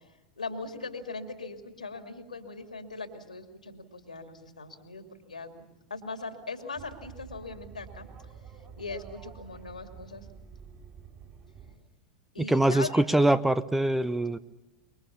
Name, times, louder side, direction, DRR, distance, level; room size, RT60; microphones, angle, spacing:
voice 1, 0.4-8.1 8.8-10.3 12.3-13.0, left 3 dB, 80° left, 6 dB, 2.6 m, -40 dB
sound 1, 6.7-11.8, right 6 dB, 35° right, 5.5 m, -48 dB
voice 2, 12.4-14.4, right 1 dB, 5° right, 15 dB, 0.8 m, -23 dB
26.0 x 23.5 x 7.2 m, 1.0 s
figure-of-eight pair, 85°, 4 cm